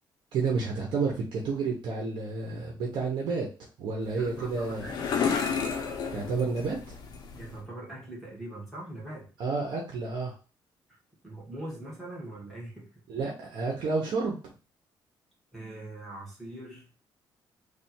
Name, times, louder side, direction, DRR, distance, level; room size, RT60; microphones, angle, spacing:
voice 1, 0.3-4.9 6.1-7.0 9.4-10.3 13.1-14.5, right 4 dB, 65° right, -1 dB, 1.0 m, -30 dB
sound 1, 4.0-7.6, left 6 dB, 55° left, 0.8 m, -32 dB
voice 2, 4.1-5.2 7.4-9.3 10.9-11.0 11.2-12.9 15.5-16.8, right 1 dB, ahead, -5 dB, 1.6 m, -42 dB
3.4 x 2.5 x 4.4 m, 0.35 s
cardioid pair, 170°, 8 cm